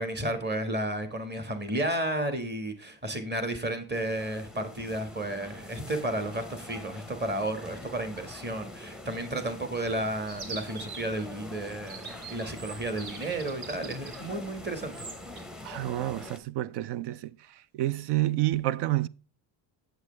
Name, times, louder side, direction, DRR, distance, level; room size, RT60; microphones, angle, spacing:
voice 1, 0.0-15.0, right 1 dB, 20° right, 1.7 m, -32 dB
sound 1, 3.9-16.4, left 2 dB, ahead, 0.8 m, -45 dB
Chirp tweet, 10.3-15.4, right 4 dB, 85° right, 2.1 m, -44 dB
voice 2, 15.6-17.3 17.7-19.1, right 15 dB, 65° right, 0.5 m, -29 dB
8.0 x 7.8 x 3.3 m
cardioid pair, 135°, 45 cm